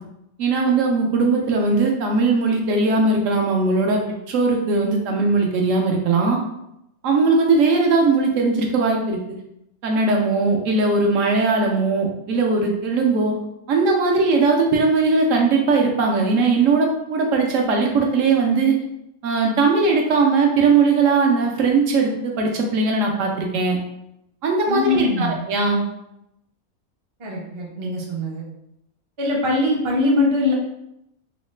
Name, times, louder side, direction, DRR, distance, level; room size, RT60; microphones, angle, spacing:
voice 1, 0.4-4.0 4.3-6.4 7.0-9.2 9.8-13.3 13.7-18.8 19.2-23.8 24.4-25.9, right 3 dB, 70° right, 1 dB, 0.9 m, -19 dB
voice 2, 24.7-25.3 27.2-28.4 29.2-30.5, left 2 dB, 40° right, -3 dB, 0.4 m, -22 dB
3.1 x 2.1 x 3.1 m, 0.83 s
omnidirectional pair, 1.5 m